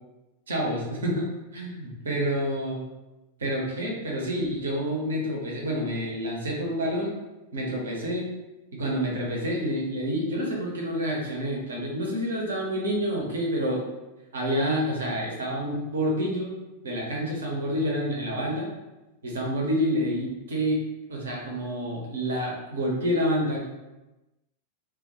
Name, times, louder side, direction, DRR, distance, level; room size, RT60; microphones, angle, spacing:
voice 1, 0.5-2.9 3.4-7.2 7.5-8.3 8.7-13.8 14.3-16.6 16.8-18.7 19.2-20.8 21.1-23.7, equal, 65° right, -2 dB, 0.6 m, -28 dB
2.1 x 2.1 x 2.7 m, 1.0 s
figure-of-eight pair, 90°, 0 cm